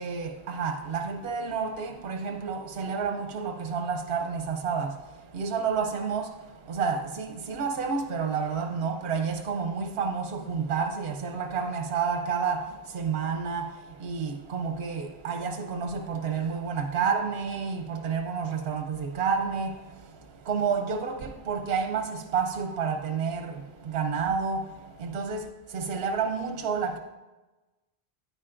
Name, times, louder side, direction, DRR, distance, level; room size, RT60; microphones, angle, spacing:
voice 1, 0.0-27.0, right 5 dB, 70° right, 0.9 m, -30 dB
9.6 x 9.1 x 2.5 m
omnidirectional pair, 1.0 m